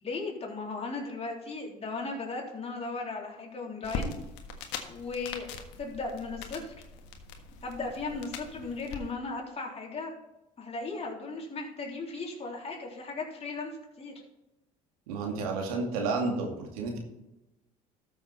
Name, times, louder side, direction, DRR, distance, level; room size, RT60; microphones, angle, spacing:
voice 1, 0.0-4.1 4.9-5.5 5.8-6.7 7.6-10.1 10.6-13.7 14.0-14.1, left 3 dB, 35° left, -1 dB, 3.5 m, -36 dB
sound 1, 3.8-9.0, left 5 dB, 70° left, 1.5 m, -41 dB
voice 2, 15.1-17.0, right 3 dB, 85° right, 1 dB, 2.3 m, -31 dB
13.0 x 7.1 x 4.2 m, 0.94 s
hypercardioid pair, 70°, 18 cm